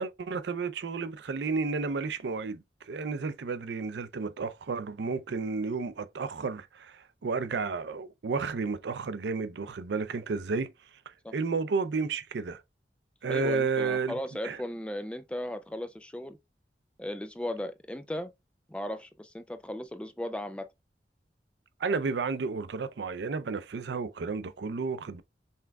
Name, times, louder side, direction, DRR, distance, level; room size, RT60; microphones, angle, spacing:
voice 1, 0.0-10.7 11.1-12.6 13.2-14.1 14.4-14.6 21.8-25.2, right 4 dB, 80° right, 0.5 m, -32 dB
voice 2, 13.3-16.4 17.0-18.3 18.7-20.7, left 1 dB, 5° left, 0.3 m, -36 dB
5.5 x 3.4 x 2.2 m
head